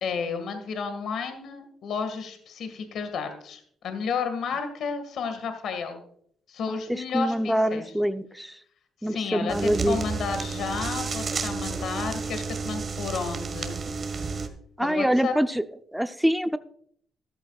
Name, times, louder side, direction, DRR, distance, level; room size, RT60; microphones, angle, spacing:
voice 1, 0.0-6.0 6.5-7.8 9.0-13.8 14.8-15.3, left 5 dB, 70° left, 8 dB, 1.8 m, -32 dB
voice 2, 6.7-8.6 9.0-10.0 14.8-15.6 15.9-16.6, equal, 5° right, 10 dB, 0.6 m, -25 dB
sound 1, 9.5-14.5, right 4 dB, 40° right, 1.6 m, -31 dB
14.0 x 12.5 x 2.4 m, 0.64 s
cardioid pair, 90°, 0 cm